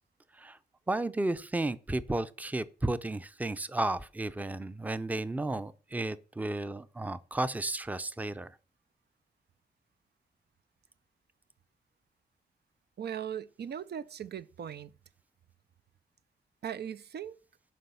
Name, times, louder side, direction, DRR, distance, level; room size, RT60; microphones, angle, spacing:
voice 1, 0.9-8.5, right 2 dB, 10° right, 0.5 m, -33 dB
voice 2, 13.0-14.9 16.6-17.4, right 8 dB, 75° right, 0.6 m, -39 dB
12.0 x 5.5 x 6.9 m
wide cardioid pair, 155°, 17 cm